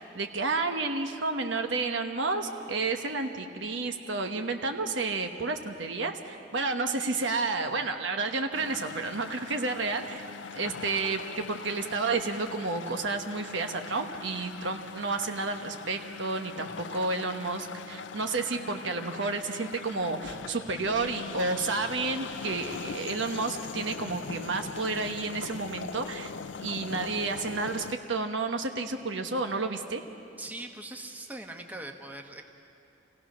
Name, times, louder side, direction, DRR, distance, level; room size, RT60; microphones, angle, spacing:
voice 1, 0.0-10.3 10.5-26.3 26.6-30.0, right 3 dB, 70° right, 5 dB, 1.2 m, -31 dB
sound 1, 8.5-27.9, left 5 dB, 70° left, 0.5 m, -41 dB
voice 2, 30.4-32.4, right 1 dB, 10° right, 3 dB, 1.1 m, -41 dB
27.5 x 16.5 x 6.2 m, 2.7 s
head